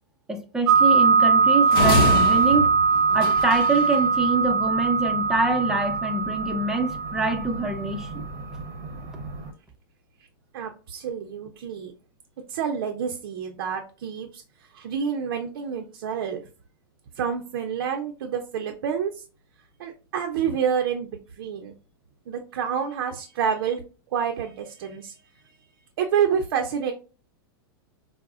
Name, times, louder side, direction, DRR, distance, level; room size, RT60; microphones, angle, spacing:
voice 1, 0.3-2.7 3.1-8.3, right 2 dB, 5° right, 0.5 m, -25 dB
sound 1, 0.7-9.5, right 5 dB, 30° right, 0.8 m, -22 dB
sound 2, 1.7-3.9, left 2 dB, 70° left, 0.7 m, -25 dB
voice 2, 10.5-11.9 12.5-14.4 14.7-16.4 17.2-19.2 19.8-21.7 22.3-23.8 24.1-25.1 26.0-26.9, right 7 dB, 70° right, 0.5 m, -28 dB
4.7 x 2.1 x 2.3 m
supercardioid pair, 135°, 12 cm